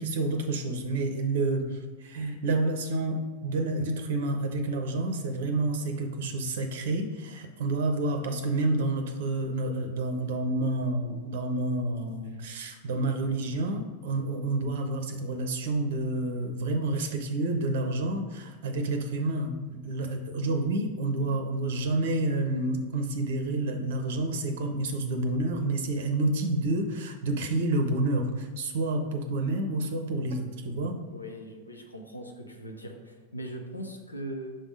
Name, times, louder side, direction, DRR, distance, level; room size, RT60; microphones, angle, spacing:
voice 1, 0.0-31.0, right 2 dB, 55° right, 6 dB, 0.6 m, -29 dB
voice 2, 30.8-34.5, right 1 dB, 85° left, 3 dB, 0.7 m, -40 dB
5.6 x 3.5 x 4.8 m, 1.4 s
figure-of-eight pair, 90°, 0 cm